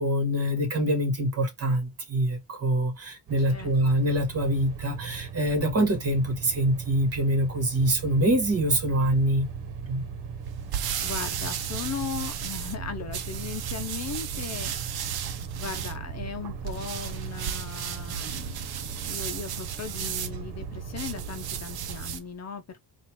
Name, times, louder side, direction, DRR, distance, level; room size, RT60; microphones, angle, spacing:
voice 1, 0.0-9.5 9.9-10.0, right 1 dB, 35° right, 1.8 m, -25 dB
sound 1, 3.3-22.1, right 6 dB, 85° right, 1.1 m, -39 dB
sound 2, 10.4-22.3, right 9 dB, 65° right, 0.8 m, -35 dB
voice 2, 11.0-14.7 15.6-18.6 18.9-22.8, left 6 dB, 40° left, 0.8 m, -37 dB
4.2 x 2.6 x 4.6 m
cardioid pair, 135°, 40 cm